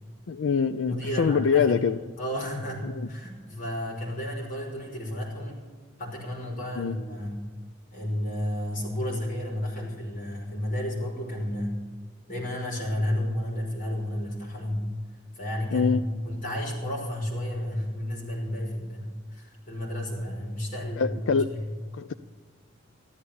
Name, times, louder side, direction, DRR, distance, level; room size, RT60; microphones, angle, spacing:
voice 1, 0.3-2.0 2.8-3.1 6.8-7.0 15.7-16.0 21.0-21.5 22.0-22.1, left 6 dB, 75° left, 10 dB, 0.5 m, -24 dB
voice 2, 0.8-1.8 2.2-5.6 6.0-7.5 7.9-11.8 12.3-14.8 15.3-21.7, left 1 dB, 40° left, -2 dB, 5.6 m, -32 dB
14.0 x 13.0 x 7.0 m, 1.5 s
head